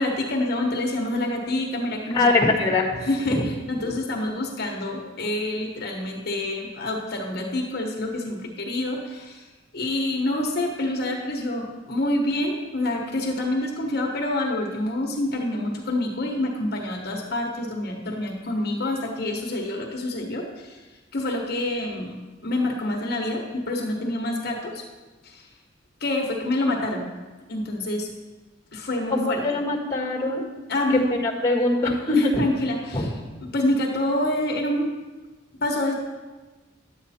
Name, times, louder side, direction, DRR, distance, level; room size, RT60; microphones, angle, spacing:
voice 1, 0.0-2.4 3.0-9.5 9.7-20.8 21.1-22.2 22.4-24.8 25.2-25.4 26.0-27.1 27.5-28.1 28.7-29.4 30.7-31.2 32.1-33.1 33.4-35.0 35.6-35.9, left 1 dB, 55° left, 1 dB, 1.3 m, -27 dB
voice 2, 2.1-3.0 29.1-30.4 31.1-32.4 32.9-33.1, left 2 dB, 20° left, -4 dB, 1.6 m, -22 dB
11.0 x 8.2 x 4.3 m, 1.3 s
head